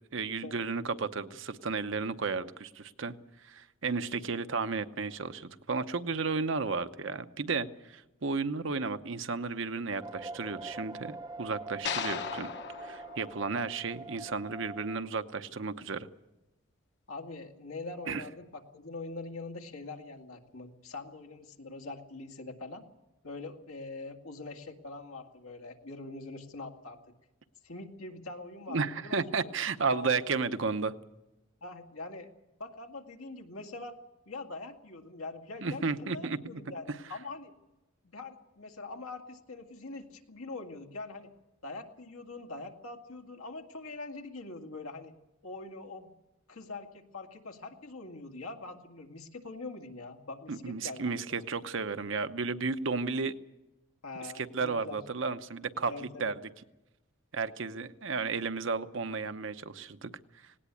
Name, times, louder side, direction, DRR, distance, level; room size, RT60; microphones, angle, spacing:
voice 1, 0.1-3.1 3.4-12.5 12.8-16.1 18.1-18.2 28.7-30.9 35.6-36.6 50.5-53.3 54.3-56.3 57.3-60.1, right 4 dB, 60° right, 10 dB, 0.8 m, -33 dB
sound 1, 10.0-15.0, right 3 dB, 20° right, 0.7 m, -44 dB
sound 2, 11.9-14.2, left 6 dB, 55° left, 1.0 m, -38 dB
voice 2, 17.1-22.8 23.2-27.0 27.6-29.5 29.9-30.2 31.6-32.3 32.6-34.0 34.3-37.5 38.0-41.3 41.6-45.1 45.4-46.1 46.5-51.4 54.0-55.0 55.9-56.3, left 3 dB, 85° left, 3 dB, 2.1 m, -43 dB
18.5 x 18.0 x 8.5 m, 0.99 s
head